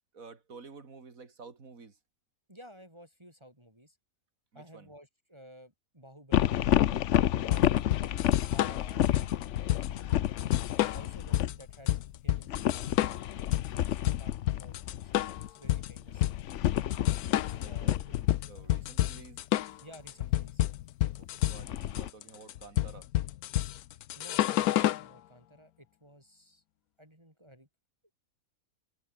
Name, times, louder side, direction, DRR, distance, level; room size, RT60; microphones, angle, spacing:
voice 1, 0.1-2.0 4.5-4.9 7.6-7.8 17.5-19.5 21.2-23.1, right 4 dB, 65° right, 3.0 m, -51 dB
voice 2, 2.5-4.0 4.5-6.6 7.2-8.0 8.5-9.1 9.5-10.5 10.9-13.6 14.2-16.3 17.6-18.0 19.8-20.6 24.2-26.6 27.0-27.7, equal, 20° right, 6.9 m, -54 dB
sound 1, 6.3-11.6 12.5-18.4 21.2-22.1, left 11 dB, 60° left, 0.9 m, -30 dB
sound 2, 7.5-25.1, left 13 dB, 80° left, 1.2 m, -29 dB
omnidirectional pair, 1.5 m